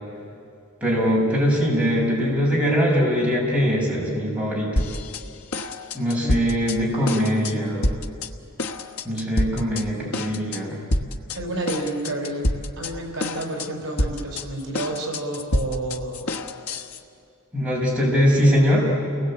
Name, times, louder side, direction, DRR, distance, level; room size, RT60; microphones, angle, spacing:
voice 1, 0.8-4.9 5.9-7.9 9.0-10.8 17.5-18.9, equal, 5° right, -5 dB, 6.3 m, -21 dB
sound 1, 4.8-5.2 5.5-6.8 7.1-7.5 7.8-8.3 8.6-9.8 10.1-10.6 10.9-11.4 11.7-12.9 13.2-13.7 14.0-17.0, left 1 dB, 80° left, 1.3 m, -27 dB
voice 2, 11.3-12.5 12.8-16.3, right 1 dB, 55° right, 1 dB, 4.8 m, -30 dB
29.5 x 20.5 x 8.7 m, 2.6 s
head